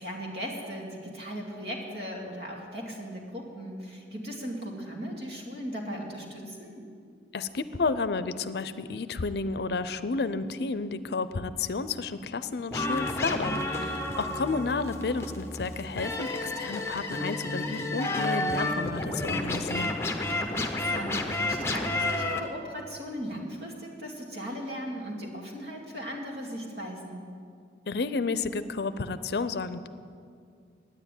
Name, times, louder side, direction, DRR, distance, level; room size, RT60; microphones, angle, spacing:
voice 1, 0.0-6.9 13.8-14.2 20.5-27.3, equal, 65° right, -1 dB, 2.5 m, -38 dB
voice 2, 7.3-20.0 27.9-29.9, left 4 dB, 65° left, 13 dB, 0.5 m, -31 dB
sound 1, 12.7-22.4, left 2 dB, 15° left, 0.7 m, -31 dB
10.5 x 9.7 x 9.0 m, 2.3 s
head